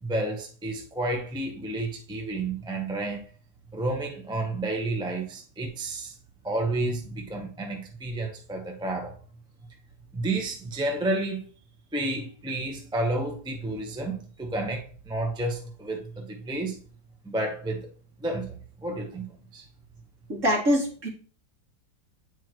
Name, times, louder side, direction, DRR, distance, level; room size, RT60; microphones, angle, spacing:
voice 1, 0.0-3.2 3.7-6.1 6.4-9.2 10.1-11.5 11.9-16.8 17.2-17.9 18.2-19.3 19.5-19.6, right 2 dB, 5° right, 0.5 m, -31 dB
voice 2, 20.3-21.1, equal, 45° right, 2.8 m, -24 dB
8.8 x 4.8 x 3.1 m
omnidirectional pair, 1.9 m